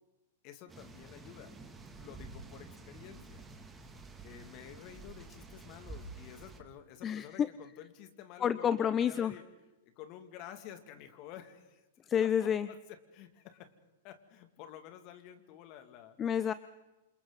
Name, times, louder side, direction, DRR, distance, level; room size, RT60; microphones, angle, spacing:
voice 1, 0.4-1.5 2.0-3.4 4.2-9.5 9.8-12.3 12.7-13.7 14.0-16.2, left 10 dB, 45° left, 7 dB, 2.5 m, -51 dB
sound 1, 0.7-6.6, right 3 dB, 10° right, 2.6 m, -50 dB
voice 2, 7.0-7.5 8.4-9.3 12.1-12.7 16.2-16.5, left 8 dB, 25° left, 15 dB, 0.7 m, -29 dB
28.5 x 27.5 x 4.1 m, 1.1 s
hypercardioid pair, 115°, 0 cm